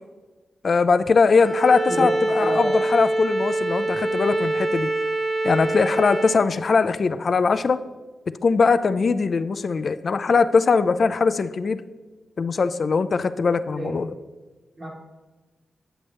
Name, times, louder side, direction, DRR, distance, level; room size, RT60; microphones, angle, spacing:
voice 1, 0.6-4.9 5.4-7.8 8.4-11.8 12.4-14.1, left 4 dB, 50° left, 13 dB, 0.4 m, -21 dB
Bowed string instrument, 1.4-6.4, right 2 dB, 5° right, 0.9 m, -25 dB
voice 2, 2.4-2.8 13.7-14.0 14.8-14.9, right 1 dB, 30° right, -2 dB, 1.3 m, -28 dB
8.9 x 7.9 x 3.1 m, 1.3 s
wide cardioid pair, 120°, 0 cm